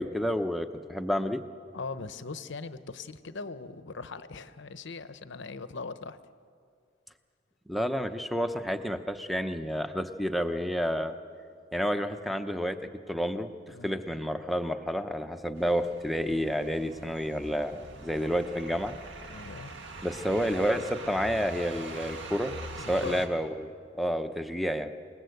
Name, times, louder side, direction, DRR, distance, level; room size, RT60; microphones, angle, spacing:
voice 1, 0.0-1.4 7.7-11.1 11.7-12.8 13.1-18.9 20.0-24.9, equal, ahead, 8 dB, 0.9 m, -30 dB
voice 2, 1.7-6.2 13.7-14.0 19.3-19.7 22.8-23.2, left 4 dB, 60° left, 12 dB, 0.9 m, -40 dB
sound 1, 15.6-23.3, right 2 dB, 65° right, 2.1 m, -43 dB
27.5 x 19.5 x 8.0 m, 2.2 s
head